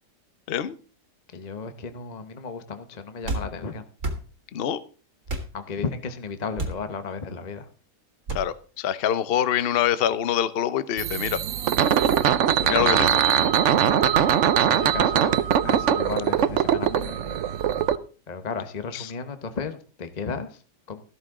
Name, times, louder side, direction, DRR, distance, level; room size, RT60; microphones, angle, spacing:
voice 1, 1.3-3.8 5.5-7.7 12.6-13.1 14.0-14.2 14.6-17.4 18.3-20.6 20.9-21.0, left 5 dB, 35° left, 0.7 m, -34 dB
sound 1, 3.2-3.5 4.0-4.2 5.3-5.5 6.6-6.8 8.3-8.5, right 2 dB, 40° right, 2.1 m, -29 dB
voice 2, 8.3-11.4 12.7-13.2 18.9-19.1, left 10 dB, 65° left, 0.5 m, -25 dB
sound 2, 11.0-18.0, right 9 dB, 75° right, 0.6 m, -21 dB
13.5 x 12.5 x 3.7 m
omnidirectional pair, 2.1 m